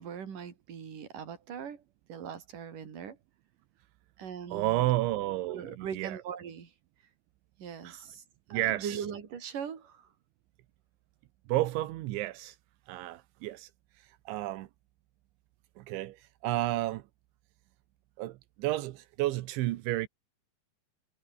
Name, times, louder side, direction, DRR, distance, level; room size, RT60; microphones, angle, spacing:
voice 1, 0.0-1.8 2.1-3.2 4.2-4.9 5.5-6.7 7.6-8.2 8.5-10.1, right 7 dB, 50° right, 4.7 m, -40 dB
voice 2, 4.5-6.2 7.8-8.0 8.5-9.0 11.5-12.6 12.9-13.7 14.0-14.7 15.8-17.1 18.2-20.1, right 16 dB, 85° right, 3.4 m, -31 dB
omnidirectional pair, 5.3 m